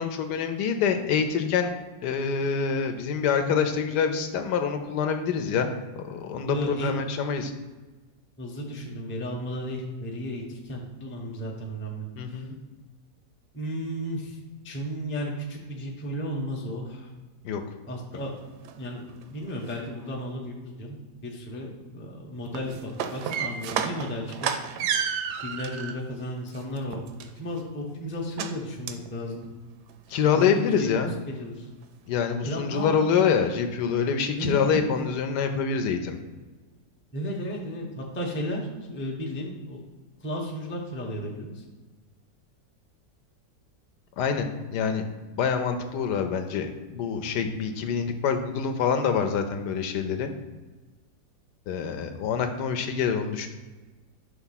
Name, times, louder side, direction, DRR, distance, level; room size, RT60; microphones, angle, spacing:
voice 1, 0.0-1.7 2.0-5.7 6.0-7.5 12.2-12.6 17.4-17.6 30.1-31.1 32.1-36.2 44.2-45.0 45.3-50.3 51.7-53.5, left 6 dB, 75° left, 6 dB, 1.2 m, -26 dB
voice 2, 6.4-7.1 8.4-12.5 13.5-14.4 14.6-17.1 17.9-18.3 18.8-24.5 24.8-25.1 25.4-27.0 27.4-29.5 30.3-30.9 31.3-31.7 32.5-33.0 34.4-34.8 37.1-39.8 40.2-41.6, equal, 15° left, -1 dB, 0.4 m, -34 dB
sound 1, 18.2-18.3 18.7-18.8 19.1-19.7 22.4-26.0 26.5-27.6 28.4-28.5 28.9-29.1 29.4-29.5 29.9-30.0 30.4-30.5, right 7 dB, 75° right, 1.1 m, -31 dB
5.7 x 3.5 x 5.7 m, 1.3 s
omnidirectional pair, 1.9 m